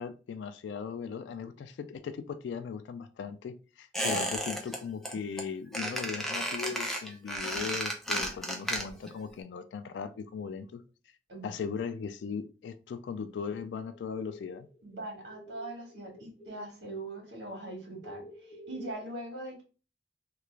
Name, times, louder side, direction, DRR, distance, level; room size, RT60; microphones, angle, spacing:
voice 1, 0.0-10.8 11.4-14.7, left 6 dB, 75° left, 10 dB, 0.3 m, -38 dB
Squeak, 3.9-4.8 5.0-5.4 5.7-9.1 9.4-9.5, equal, ahead, 0.4 m, -33 dB
sound 1, 13.7-16.8 17.1-18.9, equal, 45° left, 0.9 m, -50 dB
voice 2, 14.8-18.2 18.7-19.6, right 2 dB, 65° right, 1 dB, 1.4 m, -41 dB
2.9 x 2.4 x 3.2 m, 0.34 s
head